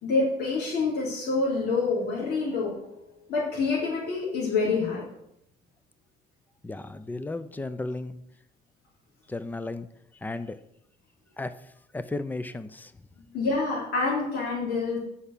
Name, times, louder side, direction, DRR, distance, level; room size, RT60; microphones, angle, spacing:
voice 1, 0.0-5.0 13.3-15.0, left 3 dB, 65° left, -7 dB, 3.6 m, -27 dB
voice 2, 6.6-8.2 9.3-9.9 10.2-10.6 11.4-11.5 11.9-12.9, left 2 dB, 10° left, 12 dB, 0.6 m, -34 dB
8.0 x 5.6 x 6.8 m, 0.78 s
cardioid pair, 110°, 17 cm